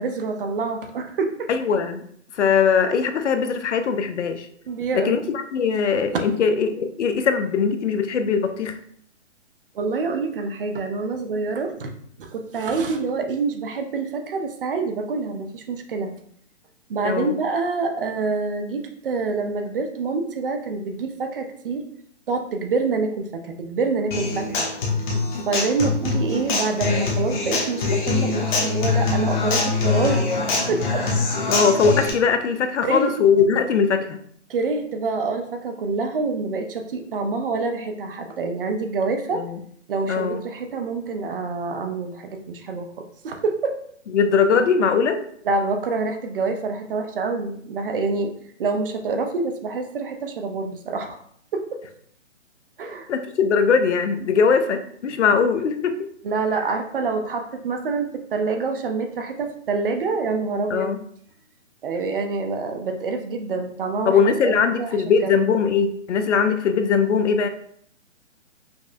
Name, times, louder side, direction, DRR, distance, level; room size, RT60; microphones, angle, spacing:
voice 1, 0.0-1.5 4.7-5.2 6.1-6.2 9.7-11.9 12.2-16.1 16.9-21.9 22.3-24.7 25.5-30.2 30.7-31.1 32.8-33.1 34.5-39.4 39.9-42.9 43.2-43.8 45.4-51.2 51.5-51.9 52.8-53.1 56.2-60.8 61.8-64.9 65.2-65.3, right 4 dB, 50° right, 5 dB, 0.6 m, -26 dB
voice 2, 1.5-2.0 2.3-4.5 4.9-8.8 17.0-17.4 25.8-25.9 31.5-34.2 39.3-39.6 40.1-40.4 44.1-45.3 53.1-56.1 60.7-61.0 64.1-67.5, left 6 dB, 70° left, 8 dB, 0.5 m, -20 dB
Human voice / Acoustic guitar, 24.1-32.1, left 3 dB, 40° left, 0.9 m, -23 dB
5.2 x 2.1 x 2.5 m, 0.63 s
hypercardioid pair, 145°, 36 cm